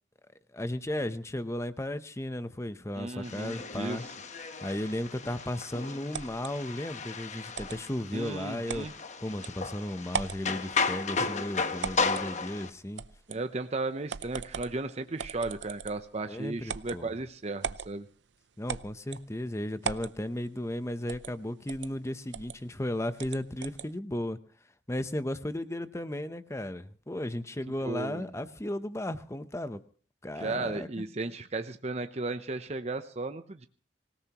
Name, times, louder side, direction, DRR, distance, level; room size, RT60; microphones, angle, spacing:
voice 1, 0.5-4.0 4.6-8.9 9.2-13.0 16.3-17.1 18.6-24.4 24.9-29.8 30.2-30.9, left 1 dB, 15° left, 12 dB, 0.8 m, -35 dB
voice 2, 3.0-4.1 8.1-8.9 11.2-11.3 13.3-18.1 27.8-28.3 30.4-33.7, right 3 dB, 35° right, 8 dB, 0.7 m, -35 dB
sound 1, 3.2-12.7, left 4 dB, 40° left, 1.1 m, -34 dB
sound 2, 6.1-6.5 7.5-7.8 8.7-8.9 9.4-9.5 10.1-10.4 11.8-12.3 13.0-13.4 14.1-14.8 15.2-16.1 16.7-17.0 17.6-17.9 18.7-19.3 19.8-20.1 21.1-21.3 21.7-21.9 22.3-22.6 23.2-23.9, right 6 dB, 75° right, 0.6 m, -37 dB
25.0 x 17.0 x 3.0 m, 0.42 s
head